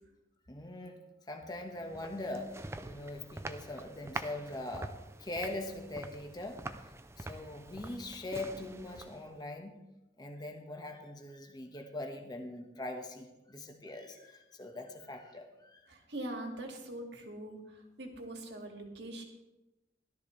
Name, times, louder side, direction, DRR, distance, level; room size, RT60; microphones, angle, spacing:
voice 1, 0.5-1.0 1.3-6.9 7.2-9.8 10.2-15.8, left 2 dB, 20° left, 3 dB, 1.3 m, -42 dB
sound 1, 1.6-9.4, right 2 dB, 15° right, 0.4 m, -45 dB
voice 2, 15.9-19.2, right 1 dB, 65° right, 2 dB, 2.2 m, -43 dB
16.5 x 12.5 x 3.3 m, 0.99 s
head